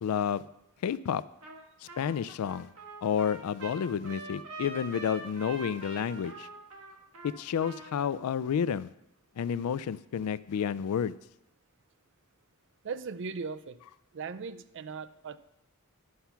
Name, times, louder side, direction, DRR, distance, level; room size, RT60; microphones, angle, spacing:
voice 1, 0.0-0.5 0.8-1.2 2.0-2.7 3.0-6.5 7.2-8.9 9.4-11.1, left 7 dB, 85° left, 17 dB, 0.3 m, -30 dB
Trumpet, 1.4-1.6 1.9-8.1, right 3 dB, 75° right, 1.8 m, -44 dB
voice 2, 12.8-13.8 14.1-15.4, right 5 dB, 55° right, 14 dB, 0.4 m, -38 dB
11.5 x 5.7 x 5.7 m, 0.83 s
head